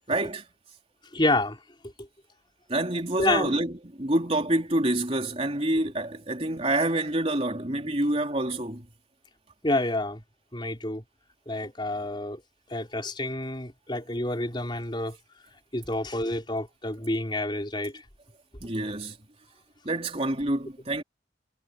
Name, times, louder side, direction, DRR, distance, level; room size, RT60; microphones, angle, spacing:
voice 1, 0.1-0.4 2.7-8.9 18.6-19.2 19.8-21.0, right 1 dB, 30° right, 3.8 m, -27 dB
voice 2, 1.1-1.6 2.0-2.1 3.2-3.6 9.6-10.2 10.5-11.0 11.5-12.4 12.7-15.2 15.7-18.0, left 2 dB, 25° left, 4.5 m, -28 dB
head